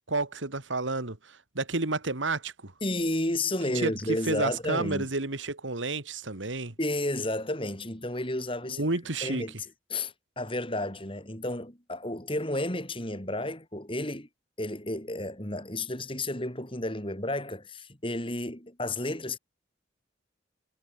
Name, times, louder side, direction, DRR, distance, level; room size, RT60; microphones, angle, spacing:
voice 1, 0.1-2.7 3.7-3.9 4.3-6.7 8.7-9.4, right 3 dB, 85° right, 2.3 m, -30 dB
voice 2, 2.8-5.1 6.8-8.9 9.2-14.3 14.6-19.4, left 1 dB, 30° left, 5.8 m, -32 dB
head